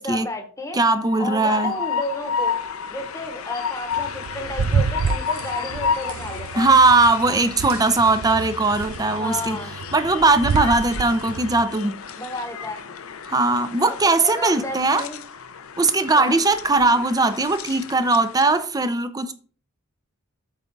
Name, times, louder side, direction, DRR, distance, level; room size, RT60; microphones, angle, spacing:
voice 1, 0.0-0.8 1.2-2.6 2.9-6.7 9.2-9.7 12.2-12.9 13.8-14.0 14.2-15.2 16.2-16.4, left 2 dB, 15° left, 1.0 m, -32 dB
voice 2, 0.7-1.7 6.6-9.6 9.9-12.0 13.3-15.0 15.8-19.3, right 3 dB, 15° right, 0.5 m, -19 dB
Train, 0.8-18.6, left 6 dB, 80° left, 0.6 m, -32 dB
sound 1, 3.9-11.6, right 5 dB, 80° right, 0.4 m, -29 dB
8.2 x 3.6 x 5.3 m
head